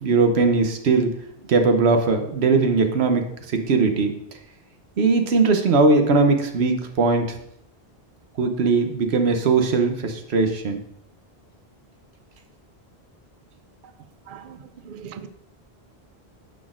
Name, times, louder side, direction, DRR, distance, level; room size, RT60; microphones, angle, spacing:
voice 1, 0.0-1.1 1.5-3.3 3.5-4.1 5.0-7.3 8.4-10.8, right 4 dB, 90° right, 1.1 m, -19 dB
voice 2, 14.3-15.3, right 7 dB, 60° right, 0.6 m, -40 dB
9.7 x 6.1 x 2.5 m
omnidirectional pair, 1.1 m